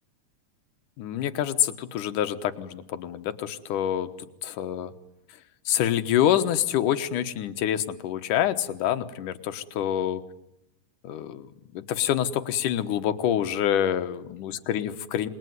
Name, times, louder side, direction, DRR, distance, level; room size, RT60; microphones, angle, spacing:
voice 1, 1.0-4.1 4.4-4.9 5.7-10.2 11.0-11.5 11.7-15.3, left 10 dB, 70° left, 9 dB, 2.7 m, -26 dB
28.0 x 21.5 x 9.5 m, 0.86 s
omnidirectional pair, 3.9 m